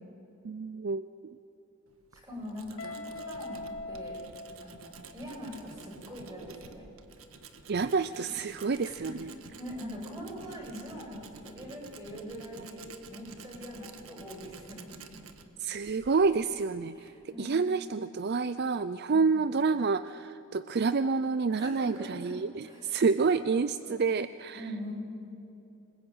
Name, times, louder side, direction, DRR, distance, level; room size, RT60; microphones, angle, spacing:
voice 1, 0.4-1.1 7.7-9.3 15.6-17.1 17.4-24.6, right 4 dB, 50° right, 14 dB, 0.5 m, -28 dB
Tools, 1.9-17.3, right 4 dB, 85° right, 1.5 m, -51 dB
voice 2, 2.1-4.2 4.6-6.8 9.0-9.1 9.6-12.8 13.1-14.9 16.9-17.6 19.1-19.5 21.6-22.9 23.3-24.0 24.5-24.9, equal, 15° right, -2 dB, 7.4 m, -43 dB
Guitar, 2.8-5.6, left 2 dB, 75° left, 1.3 m, -42 dB
26.5 x 20.5 x 8.9 m, 2.9 s
head